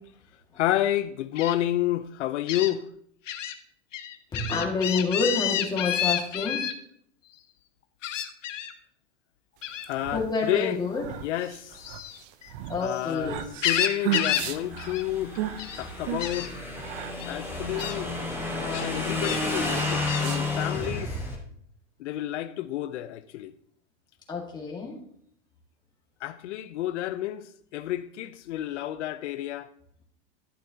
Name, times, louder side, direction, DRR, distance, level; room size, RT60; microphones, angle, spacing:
voice 1, 0.6-2.9 9.9-10.8 11.2-11.8 12.8-13.4 13.6-15.4 15.8-16.5 17.2-18.1 18.5-21.2 22.0-23.5 26.2-29.7, left 13 dB, 70° left, 0.7 m, -30 dB
Gull seagull, 1.4-1.5 2.5-2.7 3.3-3.5 3.9-6.7 8.0-8.7 9.6-9.9 11.7-13.0 13.4-14.5 14.8-15.0 15.3-15.8 16.2-16.5 17.2-17.3 17.8-18.0 18.7-19.4 20.1-20.3, left 11 dB, 90° left, 1.3 m, -30 dB
voice 2, 4.3-6.6 10.1-11.0 12.7-13.5 24.3-25.0, left 4 dB, 10° left, 1.9 m, -28 dB
sound 1, 9.7-20.9, right 12 dB, 45° right, 0.8 m, -36 dB
Motorcycle / Engine, 14.3-21.4, left 2 dB, 5° right, 1.4 m, -31 dB
12.0 x 10.0 x 2.8 m
supercardioid pair, 155°, 37 cm